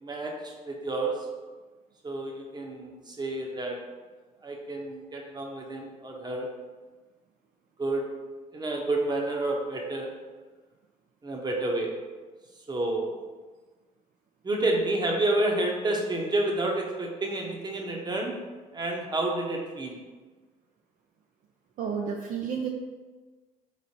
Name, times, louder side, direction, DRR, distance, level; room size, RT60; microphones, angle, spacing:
voice 1, 0.0-1.2 2.0-3.8 4.4-6.5 7.8-8.0 8.5-10.1 11.2-11.9 12.7-13.1 14.4-18.3 18.7-20.0, right 2 dB, 25° right, 0 dB, 0.8 m, -29 dB
voice 2, 21.8-22.7, right 6 dB, 55° right, 1 dB, 0.4 m, -31 dB
4.1 x 3.2 x 2.8 m, 1.3 s
supercardioid pair, 70°, 16 cm